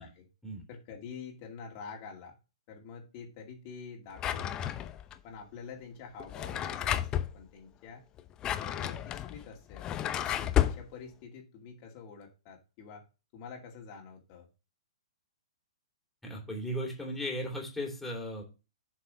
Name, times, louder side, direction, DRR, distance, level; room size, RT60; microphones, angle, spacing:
voice 1, 0.7-2.4 2.7-4.9 5.2-8.0 8.5-13.0 13.3-14.5, left 5 dB, 40° left, -1 dB, 2.5 m, -47 dB
Drawer open or close, 4.2-5.1 6.2-7.3 8.2-10.8, left 11 dB, 25° left, 0.7 m, -31 dB
voice 2, 16.2-18.4, equal, 5° left, -1 dB, 3.0 m, -36 dB
7.9 x 4.6 x 5.3 m, 0.31 s
hypercardioid pair, 130°, 3 cm